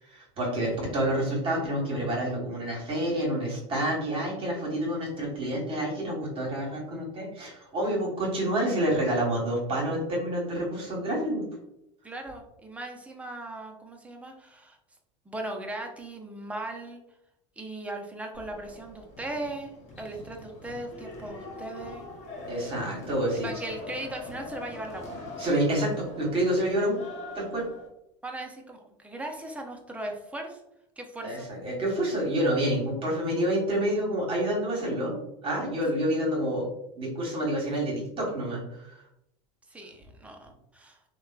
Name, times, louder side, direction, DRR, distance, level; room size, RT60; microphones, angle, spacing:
voice 1, 0.1-11.4 22.5-23.5 25.4-27.0 27.3-27.7 31.2-36.7 37.0-38.9, right 1 dB, 35° right, -3 dB, 1.2 m, -28 dB
voice 2, 12.0-14.8 15.3-17.0 17.6-22.0 23.3-25.1 28.2-30.6 31.0-31.5 39.7-41.0, right 1 dB, 10° right, 2 dB, 0.5 m, -38 dB
sound 1, 18.3-27.9, left 2 dB, 45° left, 0.8 m, -43 dB
2.9 x 2.2 x 2.3 m, 0.83 s
hypercardioid pair, 90°, 15 cm